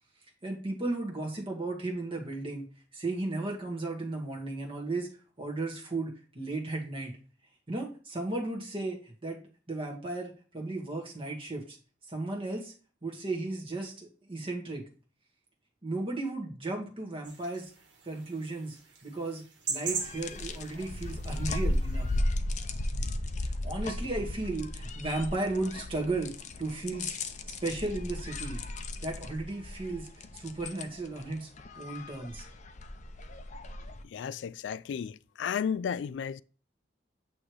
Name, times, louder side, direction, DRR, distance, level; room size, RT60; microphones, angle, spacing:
voice 1, 0.4-2.7 2.9-5.1 5.4-7.1 7.7-9.4 9.7-11.8 12.1-12.7 13.0-14.8 15.8-17.7 18.0-18.8 19.0-19.4 19.7-22.1 23.6-26.3 26.6-27.2 27.5-28.6 29.0-31.5 31.8-32.4, right 2 dB, 30° right, 1.5 m, -35 dB
sound 1, 17.2-22.2, right 5 dB, 80° right, 1.6 m, -41 dB
sound 2, 19.9-34.0, left 1 dB, 40° left, 0.6 m, -35 dB
voice 2, 34.1-36.4, left 7 dB, 80° left, 0.3 m, -33 dB
8.6 x 3.1 x 4.8 m
head